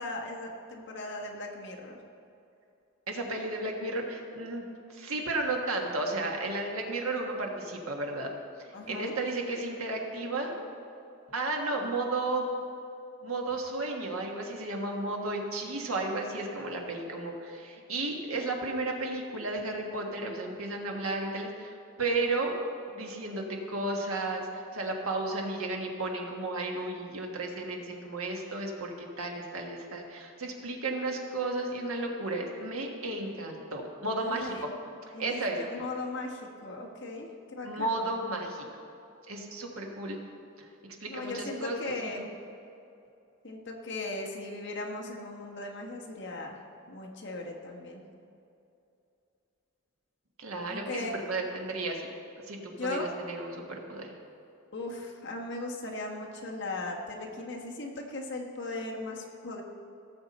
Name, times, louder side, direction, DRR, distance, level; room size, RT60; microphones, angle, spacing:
voice 1, 0.0-2.0 8.7-9.1 34.2-34.6 35.1-38.1 41.1-42.3 43.4-46.6 46.9-48.0 50.7-51.1 52.8-53.1 54.7-59.6, left 2 dB, 55° left, 0 dB, 1.4 m, -38 dB
voice 2, 3.1-4.6 4.9-8.3 8.6-10.5 11.3-12.5 13.2-22.6 22.9-34.7 35.2-35.6 37.6-38.7 39.3-40.2 40.6-42.2 50.4-52.1 52.5-54.2, right 2 dB, 75° right, 1 dB, 1.5 m, -33 dB
17.0 x 7.2 x 4.3 m, 2.7 s
head